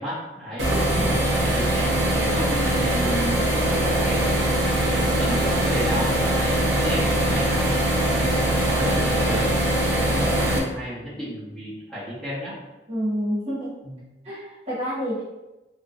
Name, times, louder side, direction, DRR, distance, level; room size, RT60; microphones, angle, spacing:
voice 1, 0.0-12.5 13.8-14.0, equal, 5° left, -12 dB, 1.2 m, -33 dB
sound 1, 0.6-10.6, right 1 dB, 75° right, 0.8 m, -22 dB
voice 2, 12.9-13.7 14.2-15.2, equal, 35° right, -9 dB, 1.2 m, -28 dB
3.3 x 3.0 x 2.5 m, 1.0 s
head